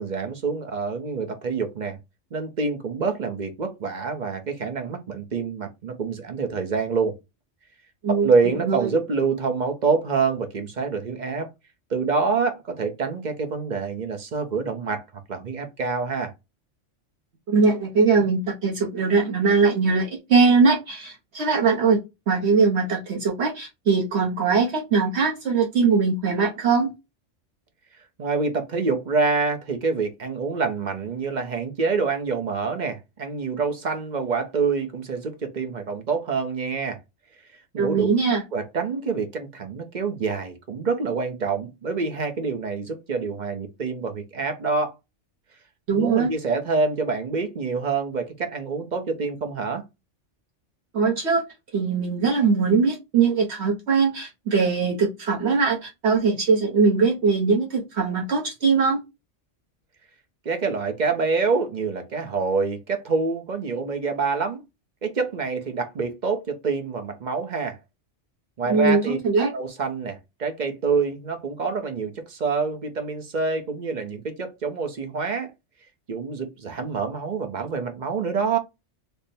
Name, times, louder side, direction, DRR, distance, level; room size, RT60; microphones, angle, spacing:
voice 1, 0.0-2.0 2.3-7.1 8.1-11.5 11.9-15.0 15.3-16.3 28.2-37.0 37.7-38.1 38.5-44.9 45.9-49.8 60.4-64.6 65.0-67.8 68.6-69.2 69.5-75.5 76.1-78.6, right 4 dB, 45° right, 0.7 m, -26 dB
voice 2, 17.5-22.0 22.3-26.9 37.8-38.4 45.9-46.3 50.9-51.4 51.7-59.0 68.7-69.5, right 4 dB, 70° right, 1.1 m, -21 dB
3.4 x 2.1 x 4.1 m
omnidirectional pair, 1.2 m